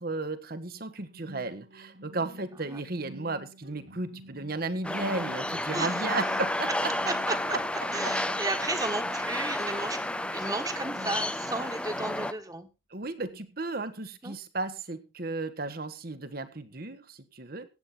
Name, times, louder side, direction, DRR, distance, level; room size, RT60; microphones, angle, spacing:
voice 1, 0.0-6.9 12.9-17.7, right 3 dB, 50° right, 10 dB, 1.4 m, -34 dB
sound 1, 1.0-12.4, equal, 70° right, 3.8 m, -49 dB
sound 2, 3.6-8.6 9.2-9.3 9.7-11.5, left 1 dB, 85° left, 3.2 m, -55 dB
sound 3, 4.8-12.3, left 1 dB, 5° left, 0.6 m, -31 dB
voice 2, 5.7-6.2 7.0-7.6 7.9-10.0 10.3-12.7 14.2-14.3, right 2 dB, 20° right, 7 dB, 1.6 m, -34 dB
16.0 x 8.5 x 4.2 m, 0.29 s
head